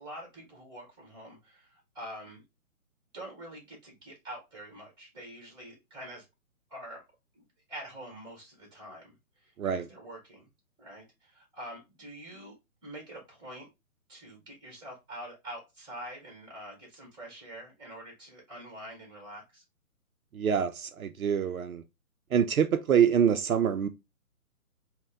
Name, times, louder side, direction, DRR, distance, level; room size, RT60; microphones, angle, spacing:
voice 1, 0.0-2.4 3.1-6.2 6.7-7.0 7.3-9.1 9.4-10.5 10.8-12.5 12.8-13.7 14.1-19.6, right 1 dB, 10° right, 1.5 m, -45 dB
voice 2, 20.3-21.8 22.3-23.9, right 8 dB, 75° right, 0.5 m, -25 dB
4.1 x 2.2 x 3.2 m
figure-of-eight pair, 135°, 43 cm